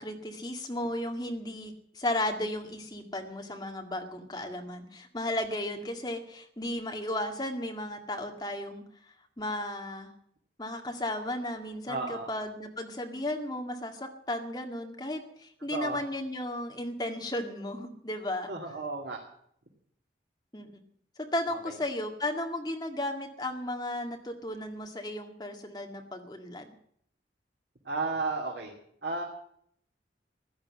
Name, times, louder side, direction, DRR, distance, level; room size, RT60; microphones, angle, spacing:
voice 1, 0.0-8.8 9.4-10.1 10.6-18.5 20.5-20.7 21.2-26.7, left 1 dB, 25° left, 4 dB, 2.0 m, -34 dB
voice 2, 11.9-12.3 15.7-16.0 18.5-19.2 21.5-21.7 27.8-28.7 29.0-29.2, right 3 dB, 75° right, -1 dB, 2.9 m, -33 dB
15.5 x 12.0 x 7.8 m, 0.67 s
head